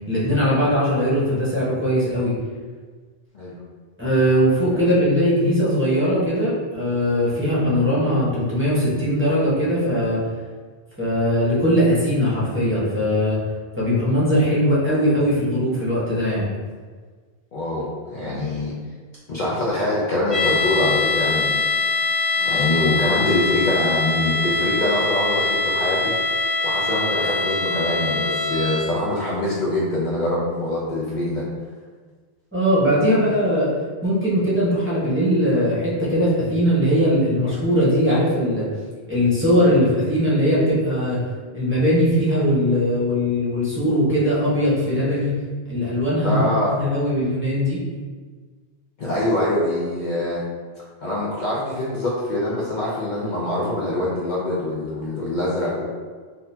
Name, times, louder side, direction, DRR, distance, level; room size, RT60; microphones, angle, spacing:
voice 1, 0.1-2.3 4.0-10.2 11.0-13.4 13.8-16.5 32.5-33.7 34.0-38.7 39.1-41.2 41.5-45.4 45.7-47.8, equal, 10° right, -10 dB, 1.1 m, -20 dB
voice 2, 17.5-18.7 19.3-21.6 22.4-26.1 26.6-31.4 46.2-46.7 49.0-50.4 51.0-55.9, left 1 dB, 50° left, -7 dB, 0.7 m, -24 dB
sound 1, 20.3-29.0, left 3 dB, 80° left, 1.1 m, -23 dB
3.9 x 2.7 x 2.7 m, 1.5 s
omnidirectional pair, 1.1 m